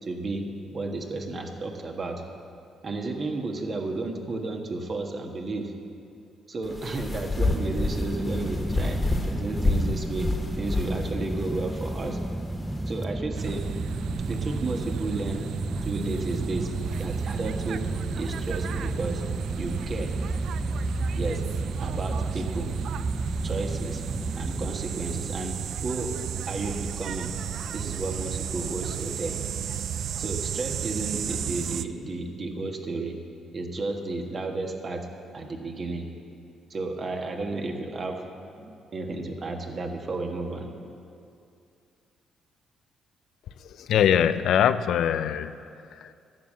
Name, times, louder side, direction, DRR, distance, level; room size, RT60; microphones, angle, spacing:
voice 1, 0.0-0.5 0.7-2.2 2.8-5.7 6.5-9.0 9.3-10.3 10.6-12.2 12.9-13.7 14.3-15.4 15.8-16.7 17.0-17.9 18.2-19.2 19.6-20.1 21.2-21.4 21.8-22.7 23.4-24.0 24.4-26.1 26.4-27.3 27.7-29.4 30.2-33.2 33.5-35.1 35.3-36.1 36.7-38.2 38.6-40.7, right 3 dB, 40° right, 3 dB, 1.4 m, -32 dB
sound 1, 6.6-13.0, left 2 dB, 20° left, 1.5 m, -29 dB
sound 2, 7.5-24.7, right 1 dB, 5° right, 0.4 m, -33 dB
sound 3, 13.3-31.9, right 9 dB, 70° right, 0.4 m, -33 dB
voice 2, 43.6-45.6 46.0-46.1, left 9 dB, 75° left, 12 dB, 0.4 m, -23 dB
12.0 x 7.3 x 7.4 m, 2.5 s
cardioid pair, 90°, 0 cm